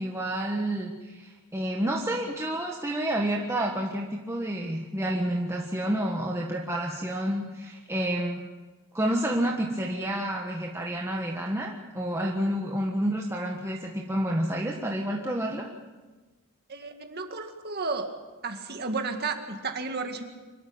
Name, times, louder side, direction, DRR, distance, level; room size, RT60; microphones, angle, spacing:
voice 1, 0.0-8.4 8.9-15.7, right 1 dB, 15° right, -1 dB, 1.5 m, -29 dB
voice 2, 16.7-18.1 18.4-20.2, right 4 dB, 45° right, 5 dB, 2.1 m, -32 dB
25.0 x 13.0 x 8.7 m, 1.2 s
head